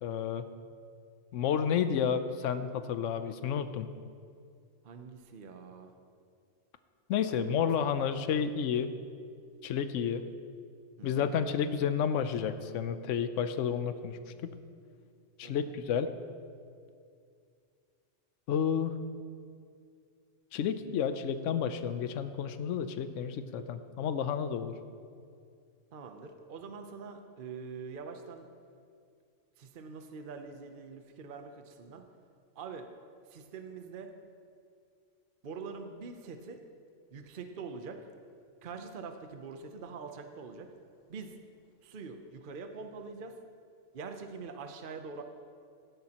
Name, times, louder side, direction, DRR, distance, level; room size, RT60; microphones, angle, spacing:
voice 1, 0.0-0.5 1.3-3.9 7.1-8.9 9.6-10.3 11.0-14.5 15.4-16.1 18.5-19.0 20.5-24.8, left 7 dB, 80° left, 10 dB, 1.0 m, -31 dB
voice 2, 4.8-5.9 7.3-8.4 11.0-11.4 15.4-15.7 25.9-28.5 29.6-32.0 32.6-32.9 33.3-34.1 35.4-36.6 37.1-38.0 38.6-40.7 41.1-41.3 41.8-43.3 43.9-45.2, right 5 dB, 50° right, 6 dB, 0.8 m, -44 dB
17.0 x 10.5 x 2.9 m, 2.3 s
omnidirectional pair, 1.3 m